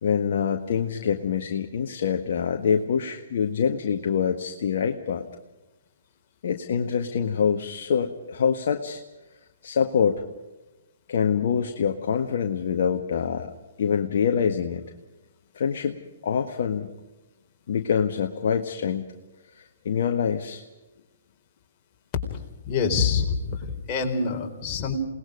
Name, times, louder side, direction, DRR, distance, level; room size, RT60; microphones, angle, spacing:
voice 1, 0.0-5.2 6.4-9.0 9.6-10.2 11.1-13.5 13.8-14.8 15.5-16.9 17.7-19.0 19.5-20.6, left 7 dB, 60° left, 4 dB, 1.6 m, -25 dB
voice 2, 22.7-25.0, left 5 dB, 30° left, 1 dB, 4.3 m, -26 dB
29.0 x 19.5 x 5.2 m, 1.1 s
figure-of-eight pair, 125°, 0 cm